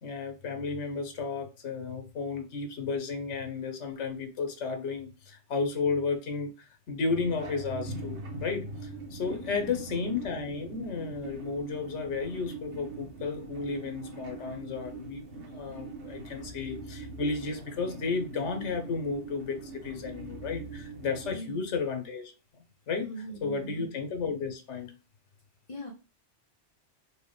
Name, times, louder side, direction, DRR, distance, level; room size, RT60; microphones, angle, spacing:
voice 1, 0.0-8.7 9.1-22.3 22.9-24.9, left 4 dB, 80° left, 1.2 m, -33 dB
sound 1, 7.1-21.3, right 3 dB, 75° right, 1.3 m, -42 dB
voice 2, 9.4-10.0 21.3-21.7 23.0-23.9 25.7-25.9, right 1 dB, 35° left, 0.7 m, -41 dB
4.5 x 2.3 x 3.2 m
omnidirectional pair, 1.2 m